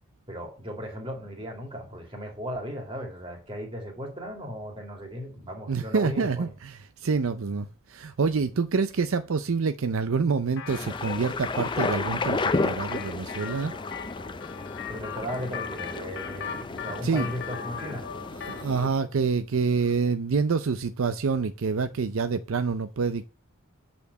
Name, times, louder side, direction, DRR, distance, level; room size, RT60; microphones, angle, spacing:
voice 1, 0.3-6.5 14.9-18.1 19.8-19.9, equal, 25° right, 2.7 m, -36 dB
voice 2, 5.7-13.7 17.0-17.3 18.4-23.3, right 5 dB, 65° right, 0.5 m, -27 dB
sound 1, 10.6-18.7, left 8 dB, 55° left, 0.9 m, -39 dB
sound 2, 10.7-18.9, left 3 dB, 20° left, 0.4 m, -32 dB
8.3 x 4.4 x 6.9 m
head